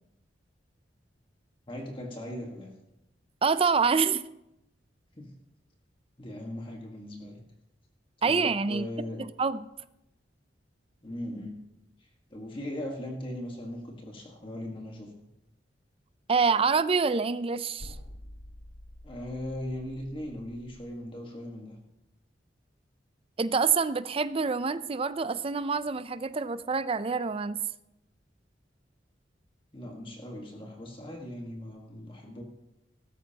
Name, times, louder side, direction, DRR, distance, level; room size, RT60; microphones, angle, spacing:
voice 1, 1.7-2.7 5.2-5.3 6.2-7.4 8.2-9.2 11.0-11.6 12.0-15.1 19.0-21.8 29.7-32.4, left 1 dB, 30° left, 1.5 m, -39 dB
voice 2, 3.4-4.2 8.2-8.9 9.2-9.6 16.3-18.0 23.4-27.6, right 5 dB, 30° right, 0.4 m, -26 dB
sound 1, 17.8-20.9, left 1 dB, 55° left, 1.3 m, -47 dB
16.5 x 13.5 x 2.9 m
head